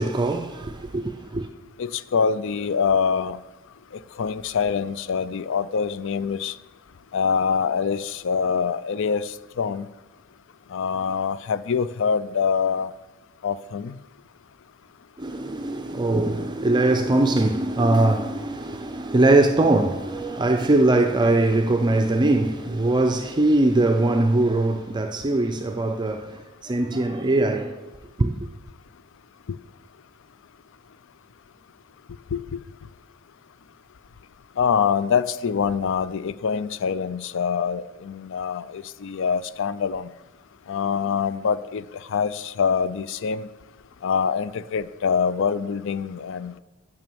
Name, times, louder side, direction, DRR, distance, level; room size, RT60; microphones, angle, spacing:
voice 1, 0.0-1.5 15.2-27.8 28.2-28.3, right 2 dB, 20° right, 0.5 m, -21 dB
voice 2, 1.8-3.4 4.2-6.6 7.1-9.9 10.7-12.9 13.4-14.0 32.3-32.6 34.6-40.1 40.7-43.5 44.0-46.6, left 6 dB, 65° left, 0.4 m, -25 dB
9.1 x 6.9 x 7.0 m
head